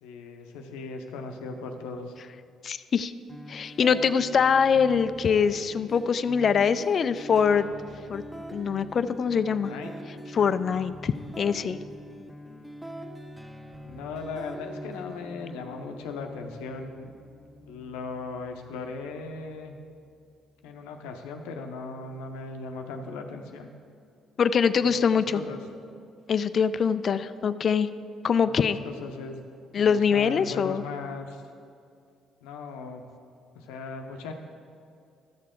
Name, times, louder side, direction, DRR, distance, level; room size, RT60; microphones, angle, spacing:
voice 1, 0.0-2.2 9.5-9.9 13.8-17.1 17.7-19.8 20.6-23.7 24.8-25.6 28.4-29.4 29.7-31.4 32.4-33.1 33.5-34.3, left 4 dB, 90° left, 4 dB, 0.7 m, -38 dB
voice 2, 2.6-3.1 3.5-7.7 8.1-8.2 8.5-9.7 10.3-11.8 24.4-25.4 26.3-27.9 28.2-28.8 29.7-30.8, left 6 dB, 55° left, 13 dB, 0.3 m, -23 dB
sound 1, 3.3-21.3, equal, 5° right, 1.1 m, -44 dB
13.0 x 6.6 x 3.7 m, 2.4 s
supercardioid pair, 60°, 0 cm